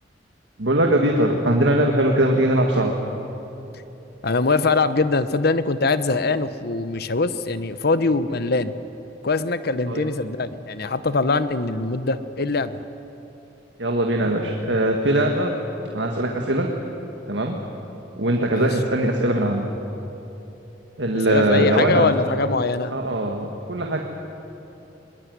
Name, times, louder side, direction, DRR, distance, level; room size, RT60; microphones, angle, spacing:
voice 1, 0.6-3.0 9.9-10.0 13.8-15.5 15.9-16.7 17.3-17.6 18.2-19.7 21.0-22.1 22.9-24.0, right 1 dB, 70° right, 1 dB, 1.9 m, -21 dB
voice 2, 4.2-8.7 9.2-12.8 18.5-18.7 21.3-22.9, left 3 dB, 60° left, 13 dB, 1.0 m, -22 dB
21.5 x 21.0 x 9.5 m, 3.0 s
head